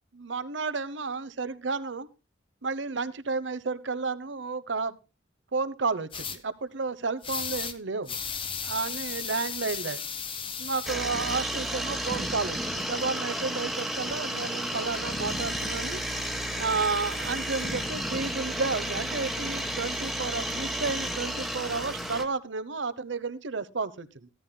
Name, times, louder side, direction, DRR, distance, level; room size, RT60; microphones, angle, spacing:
voice 1, 0.1-2.1 2.6-5.0 5.5-8.2 8.6-10.0 10.6-24.3, right 4 dB, 75° right, 14 dB, 0.9 m, -32 dB
sound 1, 6.1-6.4 7.2-7.8 8.1-10.9, left 6 dB, 30° left, 1.0 m, -34 dB
sound 2, 10.9-22.3, equal, ahead, 1.2 m, -32 dB
15.5 x 13.5 x 2.3 m, 0.28 s
head